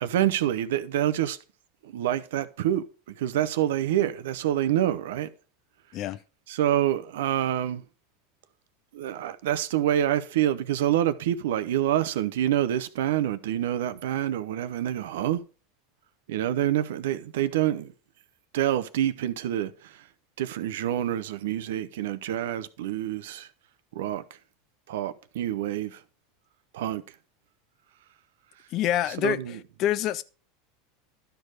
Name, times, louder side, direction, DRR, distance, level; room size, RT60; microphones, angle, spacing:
voice 1, 0.0-1.4 1.8-5.3 6.5-7.8 8.9-15.4 16.3-17.9 18.5-20.0 20.4-23.5 23.9-24.2 24.9-26.0 26.7-27.0 29.2-29.6, right 12 dB, 75° right, 0.7 m, -27 dB
voice 2, 28.7-29.4 29.8-30.2, left 12 dB, 50° left, 0.6 m, -26 dB
11.5 x 4.6 x 4.8 m
hypercardioid pair, 95°, 0 cm